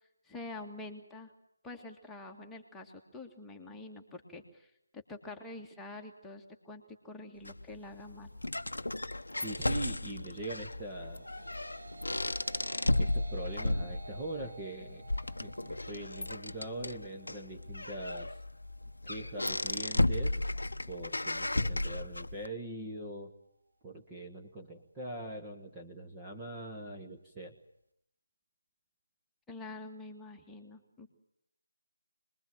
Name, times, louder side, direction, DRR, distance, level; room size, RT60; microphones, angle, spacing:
voice 1, 0.2-1.3 1.6-8.3 29.5-31.2, left 2 dB, 5° left, 0 dB, 2.0 m, -46 dB
sound 1, 7.4-22.4, left 2 dB, 70° left, 0.9 m, -34 dB
voice 2, 9.4-11.2 13.0-15.0 15.4-18.4 19.0-20.4 20.9-23.3 23.8-27.5, right 1 dB, 10° right, 0 dB, 1.6 m, -42 dB
sound 2, 10.8-20.0, right 2 dB, 75° right, 3.5 m, -53 dB
26.5 x 21.5 x 9.0 m, 0.75 s
figure-of-eight pair, 155°, 0 cm